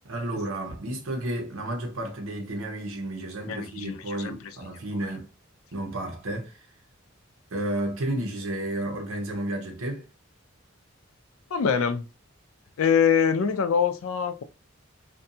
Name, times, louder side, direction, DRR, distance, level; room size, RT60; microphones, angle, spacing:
voice 1, 0.0-5.3 5.7-6.6 7.5-10.1, right 1 dB, 85° right, 0.8 m, -32 dB
voice 2, 3.5-4.7 11.5-12.1 12.8-14.4, left 7 dB, 90° left, 0.4 m, -24 dB
2.6 x 2.2 x 2.6 m
head